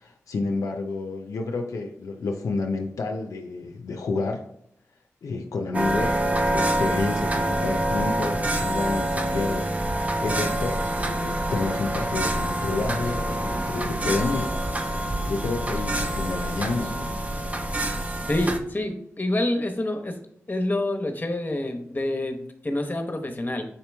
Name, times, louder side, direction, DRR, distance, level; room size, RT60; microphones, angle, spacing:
voice 1, 0.0-4.4 5.2-17.2, left 3 dB, 80° left, 3 dB, 0.4 m, -30 dB
sound 1, 5.7-18.6, right 1 dB, 25° right, 0.6 m, -26 dB
sound 2, 10.3-18.9, right 1 dB, 75° right, 0.6 m, -41 dB
voice 2, 18.3-20.2 20.5-23.7, left 1 dB, 30° left, 5 dB, 0.9 m, -27 dB
5.4 x 3.0 x 3.3 m, 0.70 s
cardioid pair, 40°, 6 cm